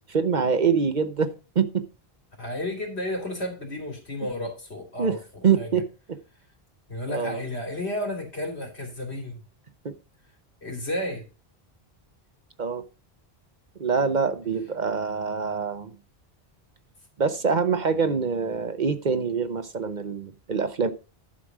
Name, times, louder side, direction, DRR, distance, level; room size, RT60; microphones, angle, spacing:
voice 1, 0.1-1.8 5.0-5.2 5.4-5.9 7.1-7.4 9.8-9.9 12.6-12.8 13.8-15.9 17.2-20.9, right 5 dB, 50° right, 1.0 m, -25 dB
voice 2, 2.4-5.7 6.9-9.4 10.6-11.2, left 1 dB, 90° left, 3.3 m, -32 dB
11.5 x 5.1 x 6.1 m
omnidirectional pair, 1.1 m